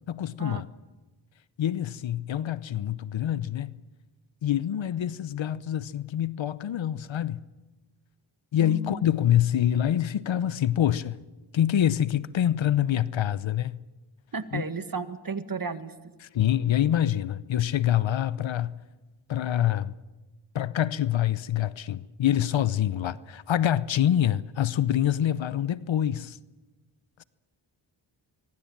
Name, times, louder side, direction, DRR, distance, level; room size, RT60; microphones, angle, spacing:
voice 1, 0.1-0.7 1.6-3.7 4.4-7.4 8.5-11.2 11.5-13.7 14.5-14.6 16.2-18.8 19.3-19.9 20.5-26.4, left 11 dB, 65° left, 0.9 m, -26 dB
voice 2, 8.6-9.0 14.3-15.9, right 4 dB, 45° right, 1.9 m, -33 dB
25.0 x 23.5 x 7.4 m
supercardioid pair, 40°, 48 cm